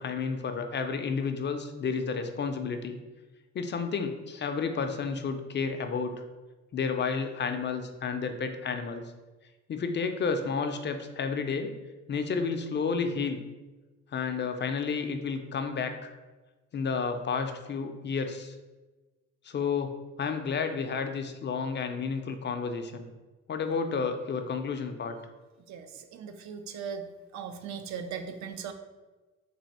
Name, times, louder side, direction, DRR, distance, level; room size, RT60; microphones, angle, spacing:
voice 1, 0.0-3.0 3.5-6.1 6.7-9.0 9.7-11.7 12.1-13.4 14.1-16.1 16.7-18.6 19.4-23.1 23.5-25.2, left 5 dB, 40° left, 6 dB, 0.4 m, -31 dB
voice 2, 25.7-27.0 27.3-28.7, right 7 dB, 70° right, 8 dB, 0.5 m, -38 dB
3.4 x 2.5 x 4.1 m, 1.2 s
cardioid pair, 90°, 30 cm